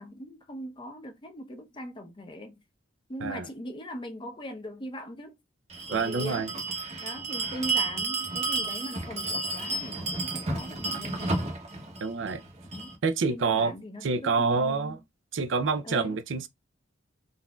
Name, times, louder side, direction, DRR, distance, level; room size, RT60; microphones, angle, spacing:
voice 1, 0.0-2.6 3.1-5.4 5.9-6.5 7.0-11.5 12.7-13.0 13.3-15.0 15.8-16.2, equal, 25° left, 0.7 m, -40 dB
Bell, 5.7-12.9, right 3 dB, 35° right, 0.9 m, -32 dB
voice 2, 5.9-6.5 12.0-12.4 13.0-13.7 14.0-15.0 15.3-16.5, right 4 dB, 70° right, 0.5 m, -27 dB
3.8 x 2.5 x 2.3 m
head